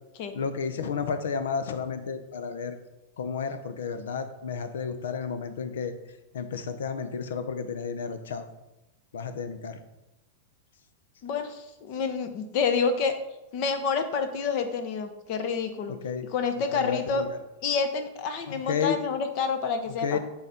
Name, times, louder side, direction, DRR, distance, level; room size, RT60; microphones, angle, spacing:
voice 1, 0.3-2.8 3.2-8.5 9.1-9.8 15.9-16.3 16.6-17.4 18.5-19.0 20.0-20.2, left 6 dB, 85° left, 10 dB, 0.8 m, -32 dB
voice 2, 11.2-13.2 13.5-15.9 16.3-17.2 17.6-20.2, left 5 dB, 50° left, 8 dB, 1.0 m, -28 dB
9.8 x 4.1 x 4.3 m, 0.95 s
supercardioid pair, 140°, 0 cm